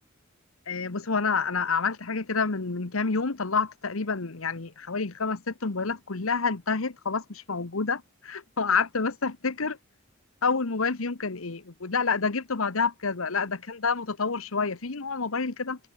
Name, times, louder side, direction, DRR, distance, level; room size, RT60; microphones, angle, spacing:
voice 1, 0.7-9.8 10.4-15.8, left 4 dB, 85° left, 1.2 m, -28 dB
open air
head